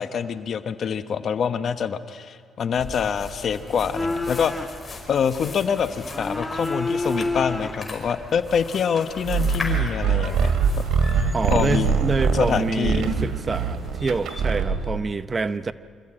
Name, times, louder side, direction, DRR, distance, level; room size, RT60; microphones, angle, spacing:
voice 1, 0.0-4.7 5.1-10.5 11.5-11.9 12.3-13.1, left 7 dB, 55° left, 10 dB, 1.1 m, -25 dB
sound 1, 2.7-14.4, left 3 dB, 30° left, 5.2 m, -40 dB
sound 2, 2.8-8.8, left 2 dB, 10° left, 1.8 m, -31 dB
sound 3, 9.2-15.0, right 5 dB, 75° right, 2.5 m, -23 dB
voice 2, 11.3-15.7, right 4 dB, 30° right, 13 dB, 0.7 m, -26 dB
26.0 x 15.0 x 8.9 m, 2.2 s
cardioid pair, 90°, 0 cm